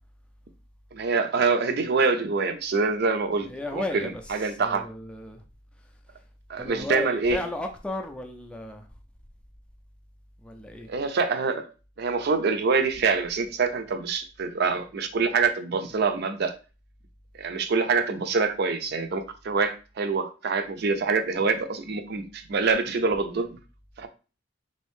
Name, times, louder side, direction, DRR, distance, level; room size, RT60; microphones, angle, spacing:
voice 1, 0.9-4.9 6.5-7.4 10.9-11.7 12.0-16.5 17.4-23.6 24.0-24.1, right 4 dB, 55° right, 0.5 m, -25 dB
voice 2, 3.5-5.4 6.6-8.9 10.4-10.9, left 2 dB, 5° left, 0.4 m, -34 dB
3.4 x 2.7 x 3.5 m
head